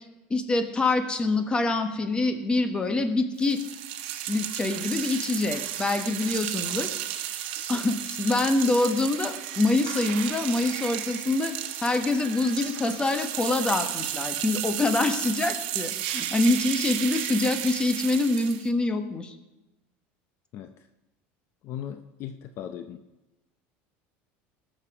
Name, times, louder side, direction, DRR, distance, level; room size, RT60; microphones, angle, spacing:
voice 1, 0.3-3.6 4.3-6.9 7.7-19.3, left 2 dB, 15° left, 7 dB, 1.2 m, -25 dB
sound 1, 3.4-18.7, right 12 dB, 80° right, 1.1 m, -33 dB
voice 2, 20.5-20.9 21.6-23.0, left 10 dB, 50° left, 9 dB, 0.6 m, -38 dB
19.0 x 6.7 x 4.9 m, 1.0 s
supercardioid pair, 130°, 6 cm